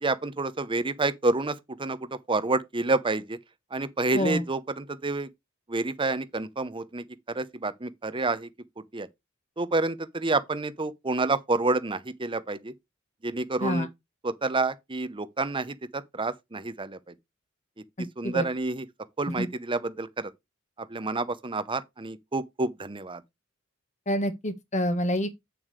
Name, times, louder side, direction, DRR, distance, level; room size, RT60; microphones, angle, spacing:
voice 1, 0.0-3.4 3.7-5.3 5.7-8.5 8.9-9.1 9.6-12.7 13.2-13.9 14.2-17.1 18.2-18.8 19.2-20.3 20.8-23.2, right 3 dB, 25° right, 0.9 m, -29 dB
voice 2, 18.0-18.5 19.3-19.5 24.1-25.3, equal, 35° left, 1.5 m, -28 dB
8.6 x 7.3 x 3.3 m
head